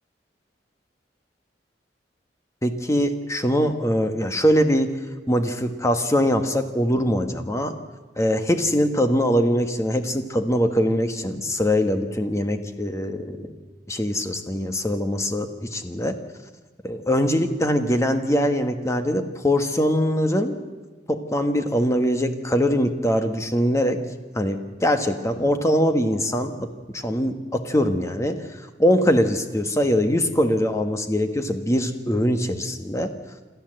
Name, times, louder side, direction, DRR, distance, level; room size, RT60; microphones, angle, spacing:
voice 1, 2.6-4.9 5.3-7.7 8.2-13.5 13.9-16.1 16.8-20.5 21.1-24.0 24.3-28.4 28.8-33.1, equal, 15° left, 7 dB, 1.4 m, -22 dB
27.5 x 13.0 x 7.8 m, 1.3 s
head